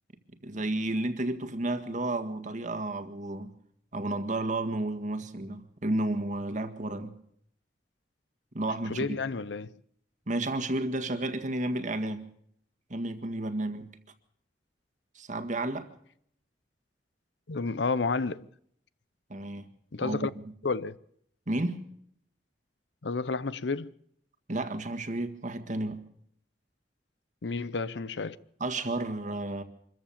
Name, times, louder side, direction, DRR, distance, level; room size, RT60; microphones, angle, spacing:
voice 1, 0.4-3.5 3.9-7.1 8.5-9.2 10.3-12.2 12.9-13.9 15.2-15.9 19.3-19.7 20.0-20.3 21.5-21.8 24.5-26.0 28.6-29.6, right 2 dB, 45° right, 1.8 m, -32 dB
voice 2, 8.9-9.7 17.5-18.4 19.9-20.3 20.6-21.0 23.0-23.9 27.4-28.4, left 4 dB, 75° left, 0.7 m, -31 dB
25.0 x 14.5 x 7.3 m
head